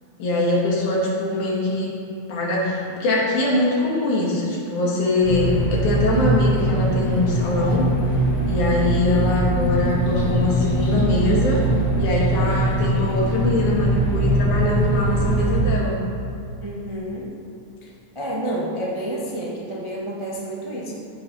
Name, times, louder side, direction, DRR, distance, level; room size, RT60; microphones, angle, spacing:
voice 1, 0.2-1.9 2.3-8.2 8.4-11.6 11.9-16.0, left 2 dB, 70° left, -4 dB, 3.4 m, -23 dB
sound 1, 5.2-15.6, right 1 dB, 55° left, 3.1 m, -21 dB
voice 2, 16.6-17.3 18.1-20.9, right 1 dB, 30° right, -5 dB, 0.5 m, -29 dB
14.5 x 6.1 x 5.6 m, 2.7 s
omnidirectional pair, 3.6 m